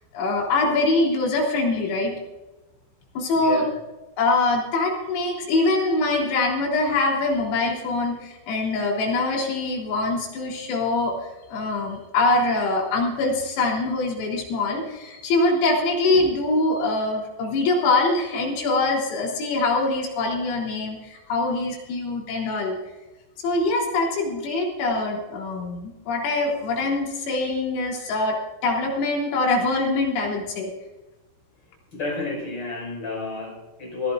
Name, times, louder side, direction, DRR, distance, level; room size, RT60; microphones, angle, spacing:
voice 1, 0.1-2.1 3.2-3.6 4.2-11.2 11.5-22.8 23.4-30.7, left 2 dB, 80° left, -1 dB, 6.2 m, -23 dB
voice 2, 3.3-3.7 31.9-34.1, left 3 dB, 25° left, -1 dB, 6.0 m, -30 dB
22.0 x 16.0 x 2.5 m, 1.1 s
omnidirectional pair, 5.9 m